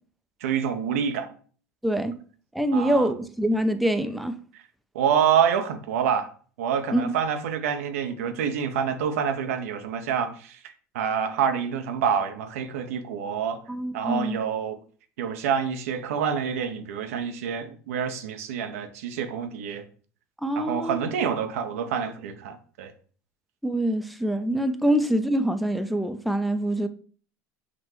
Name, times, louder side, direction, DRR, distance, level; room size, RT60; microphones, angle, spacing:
voice 1, 0.4-1.3 2.7-3.1 4.9-6.3 6.6-10.6 10.9-13.6 13.9-14.8 15.2-19.8 20.6-22.9, right 7 dB, 80° right, 0.5 m, -27 dB
voice 2, 1.8-2.1 2.5-4.4 6.9-7.1 13.7-14.4 20.4-21.0 23.6-26.9, right 1 dB, ahead, 0.3 m, -25 dB
5.9 x 2.1 x 2.9 m
hypercardioid pair, 85°, 8 cm